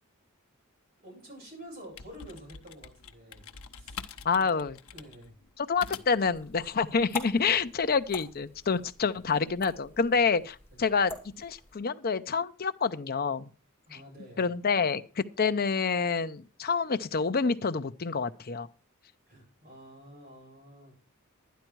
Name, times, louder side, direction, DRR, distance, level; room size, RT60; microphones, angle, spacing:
voice 1, 1.0-3.5 3.7-4.0 4.5-4.6 4.9-5.3 7.3-7.5 10.7-10.8 13.9-14.5 19.3-21.0, equal, 45° right, 7.9 m, -49 dB
sound 1, 1.7-6.3, left 6 dB, 70° left, 0.9 m, -45 dB
voice 2, 4.2-4.8 5.6-13.5 14.4-18.7, left 5 dB, 45° left, 0.6 m, -28 dB
sound 2, 6.0-11.8, left 4 dB, 10° left, 2.9 m, -46 dB
12.0 x 10.5 x 4.6 m
head